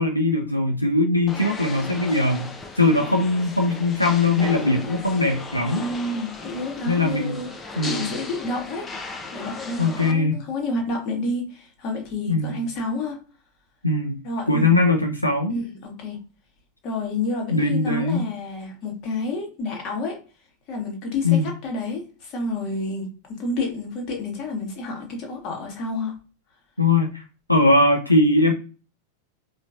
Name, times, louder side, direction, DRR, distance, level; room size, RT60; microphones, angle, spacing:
voice 1, 0.0-2.5 2.8-5.8 6.9-7.4 7.8-8.1 9.8-10.4 12.3-12.6 13.8-14.2 14.5-15.5 17.5-18.2 21.2-21.5 26.8-27.2 27.5-28.5, left 2 dB, 85° left, 0.4 m, -20 dB
sound 1, 1.3-10.1, left 3 dB, 20° left, 0.7 m, -36 dB
voice 2, 5.8-7.5 7.8-8.9 9.3-13.2 14.2-14.7 15.5-16.2 16.8-20.2 20.7-26.1, left 2 dB, 40° left, 1.3 m, -29 dB
4.3 x 2.5 x 2.5 m
figure-of-eight pair, 90°, 0 cm